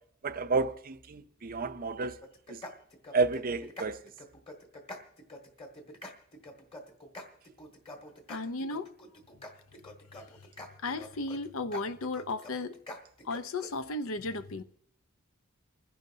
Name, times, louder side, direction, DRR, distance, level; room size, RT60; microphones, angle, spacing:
voice 1, 0.2-2.2 2.5-2.6 3.1-4.0, right 3 dB, 40° right, 0.6 m, -30 dB
sound 1, 2.2-13.7, left 1 dB, 25° left, 1.7 m, -46 dB
voice 2, 8.3-8.9 10.2-10.3 10.8-12.8 13.2-14.6, left 3 dB, 70° left, 0.7 m, -35 dB
29.0 x 10.5 x 2.8 m
head